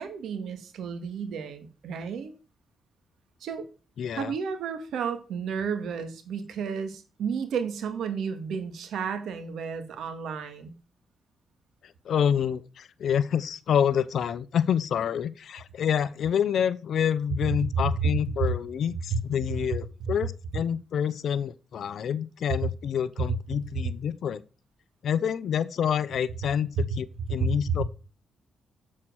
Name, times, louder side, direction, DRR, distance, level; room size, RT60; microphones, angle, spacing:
voice 1, 0.0-2.3 3.4-3.7 4.1-10.7 18.0-18.6 19.1-19.2 20.0-20.1 22.6-22.7 23.3-23.4 26.8-26.9 27.3-27.8, right 5 dB, 85° right, 1.9 m, -31 dB
voice 2, 4.0-4.3 12.0-24.4 25.0-27.8, left 8 dB, 70° left, 0.7 m, -27 dB
7.7 x 7.5 x 6.3 m
cardioid pair, 95°, 0 cm